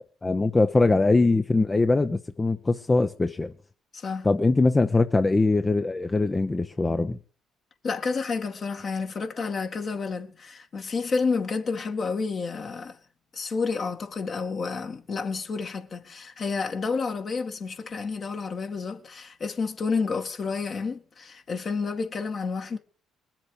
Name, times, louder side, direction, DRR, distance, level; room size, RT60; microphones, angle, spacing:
voice 1, 0.2-3.5 4.2-7.2, left 3 dB, 25° left, 0.8 m, -22 dB
voice 2, 3.9-4.3 7.8-13.0 13.3-22.8, left 4 dB, 50° left, 2.1 m, -30 dB
21.5 x 7.5 x 5.0 m
hypercardioid pair, 55°, 0 cm